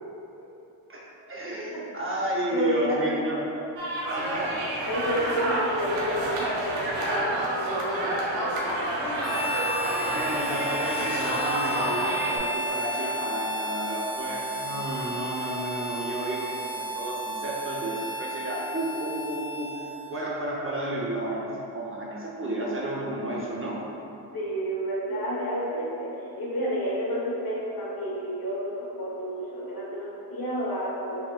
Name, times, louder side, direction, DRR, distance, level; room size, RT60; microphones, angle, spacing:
voice 1, 1.3-3.4 4.1-4.5 10.1-23.8, right 1 dB, 25° right, -5 dB, 0.6 m, -32 dB
voice 2, 2.5-3.0 4.8-9.0 24.3-31.2, equal, 45° left, -6 dB, 1.2 m, -30 dB
sound 1, 3.8-12.4, right 1 dB, 65° right, 0.9 m, -29 dB
Harmonica, 9.2-20.3, equal, 10° left, 1.1 m, -33 dB
4.7 x 2.9 x 2.4 m, 2.9 s
supercardioid pair, 55°, 49 cm